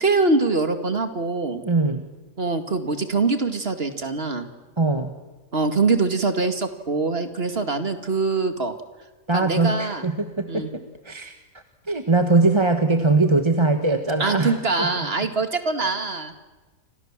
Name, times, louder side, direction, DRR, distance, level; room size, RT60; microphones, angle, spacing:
voice 1, 0.0-1.6 2.4-4.5 5.5-8.7 9.3-10.0 10.5-10.7 14.2-16.3, right 3 dB, 45° right, 8 dB, 2.4 m, -23 dB
voice 2, 1.6-2.0 4.8-5.1 9.3-14.9, right 3 dB, 20° right, 7 dB, 1.3 m, -22 dB
29.5 x 26.0 x 7.5 m, 1.2 s
omnidirectional pair, 1.5 m